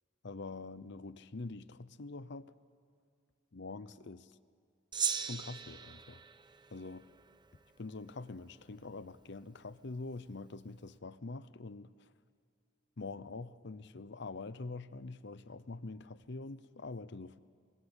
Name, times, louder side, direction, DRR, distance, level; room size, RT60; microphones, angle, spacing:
voice 1, 0.2-2.5 3.5-4.4 5.2-6.2 6.7-7.1 7.8-12.1 13.0-17.4, left 3 dB, 60° left, 0.8 m, -45 dB
Gong, 4.9-7.6, right 7 dB, 20° right, 0.8 m, -39 dB
28.0 x 23.0 x 8.2 m
head